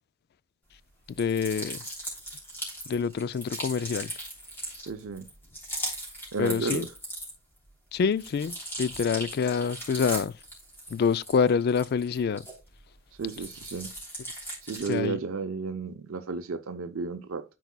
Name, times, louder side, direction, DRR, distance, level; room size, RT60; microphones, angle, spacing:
sound 1, 1.1-7.6 7.9-12.8 13.2-15.1, right 1 dB, 10° left, 3.1 m, -39 dB
voice 1, 1.2-1.8 2.9-4.1 6.4-6.9 7.9-10.3 10.9-12.4 14.9-15.2, left 6 dB, 50° left, 0.3 m, -26 dB
voice 2, 4.9-5.3 6.3-6.9 13.2-13.9 14.6-17.4, right 4 dB, 75° right, 0.6 m, -33 dB
12.0 x 4.6 x 2.2 m
head